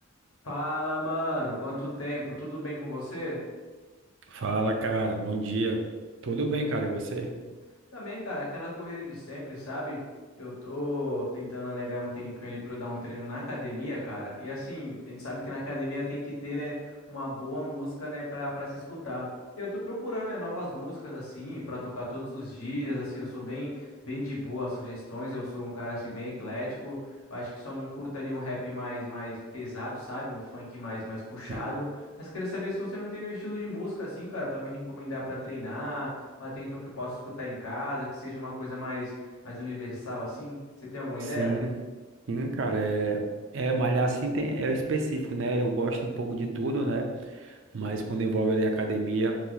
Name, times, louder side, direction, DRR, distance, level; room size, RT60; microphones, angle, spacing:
voice 1, 0.4-3.4 7.9-10.0 10.4-19.3 19.6-27.0 27.3-39.1 39.4-41.5, left 1 dB, 85° left, -5 dB, 1.2 m, -35 dB
voice 2, 4.3-5.8 6.2-7.3 31.5-31.8 41.4-41.7 42.3-43.2 43.5-49.4, right 2 dB, 60° right, 3 dB, 0.4 m, -28 dB
2.7 x 2.5 x 3.8 m, 1.3 s
head